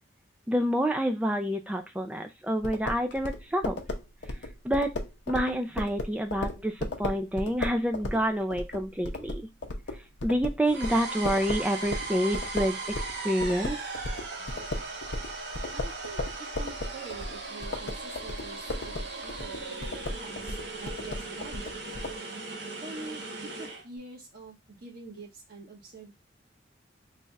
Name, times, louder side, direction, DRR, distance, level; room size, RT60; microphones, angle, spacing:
voice 1, 0.5-3.8 4.6-4.9 5.3-9.4 10.2-12.8 13.2-13.8, equal, 5° right, 5 dB, 0.4 m, -28 dB
sound 1, 2.6-13.2 13.4-22.2, left 2 dB, 80° left, 0.7 m, -35 dB
sound 2, 10.7-23.8, right 3 dB, 70° right, 1.1 m, -38 dB
voice 2, 15.7-16.2 16.6-21.7 22.8-23.2 23.6-26.1, right 3 dB, 55° right, -2 dB, 1.3 m, -45 dB
3.2 x 2.4 x 3.9 m, 0.22 s
head